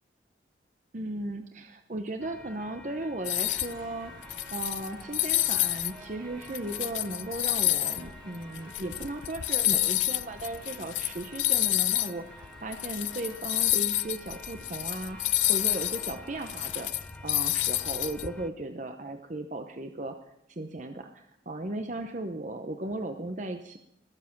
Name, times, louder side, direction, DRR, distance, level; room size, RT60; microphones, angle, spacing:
voice 1, 0.9-4.1 4.5-15.2 15.5-16.9 17.2-20.2 20.5-23.8, right 2 dB, 40° right, 6 dB, 0.8 m, -36 dB
sound 1, 2.2-18.5, left 1 dB, 5° left, 0.6 m, -49 dB
sound 2, 3.2-3.8 4.2-5.9 6.3-12.1 12.4-12.5 12.7-18.3, left 16 dB, 80° left, 0.6 m, -28 dB
sound 3, 3.3-16.8, right 2 dB, 25° right, 1.6 m, -52 dB
21.0 x 7.4 x 5.9 m, 0.81 s
head